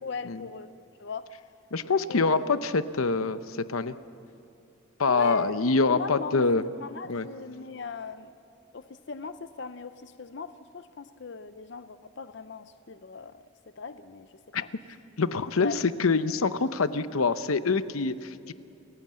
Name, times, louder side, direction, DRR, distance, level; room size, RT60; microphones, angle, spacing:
voice 1, 0.0-0.7 1.0-1.3 2.1-2.4 5.1-8.3 8.7-13.4 13.8-14.7 15.6-15.8, left 5 dB, 55° left, 11 dB, 0.6 m, -39 dB
voice 2, 1.7-3.9 5.0-6.6 7.1-7.3 14.5-14.6 15.2-18.5, left 4 dB, 85° left, 12 dB, 0.8 m, -25 dB
29.0 x 15.5 x 7.5 m, 2.9 s
head